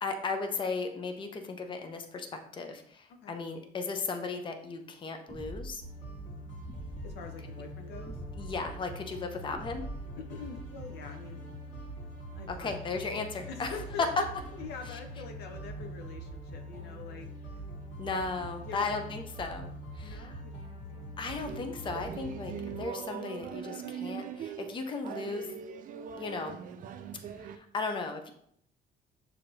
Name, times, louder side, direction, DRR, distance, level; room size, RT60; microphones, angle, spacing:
voice 1, 0.0-5.8 8.4-9.9 12.5-14.1 18.0-20.4 21.2-25.5 26.1-26.6 27.5-28.3, left 4 dB, 30° left, 5 dB, 0.6 m, -36 dB
sound 1, 5.3-5.9 6.7-7.1 8.1-8.6 9.5-10.2, equal, 10° right, 0.6 m, -43 dB
sound 2, 5.8-22.8, right 1 dB, 45° left, 1.6 m, -43 dB
voice 2, 7.0-8.2 10.2-11.4 12.3-12.8 13.5-14.3 14.5-17.6 18.6-19.0 20.0-21.1, left 6 dB, 75° left, 5 dB, 0.7 m, -45 dB
sound 3, 21.5-27.6, right 8 dB, 55° right, 0.4 m, -41 dB
6.5 x 2.8 x 2.7 m, 0.67 s
cardioid pair, 110°, 17 cm